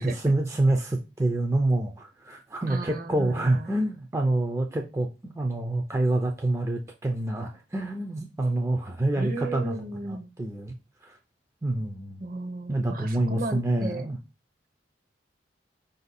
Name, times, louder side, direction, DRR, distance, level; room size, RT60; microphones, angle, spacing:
voice 1, 0.0-10.7 11.0-11.2 11.6-12.3 12.7-14.2, right 2 dB, 15° right, 2 dB, 0.4 m, -27 dB
voice 2, 2.7-3.7 9.2-10.3 12.2-14.1, right 2 dB, 50° right, 8 dB, 0.7 m, -35 dB
5.0 x 2.6 x 4.0 m, 0.28 s
head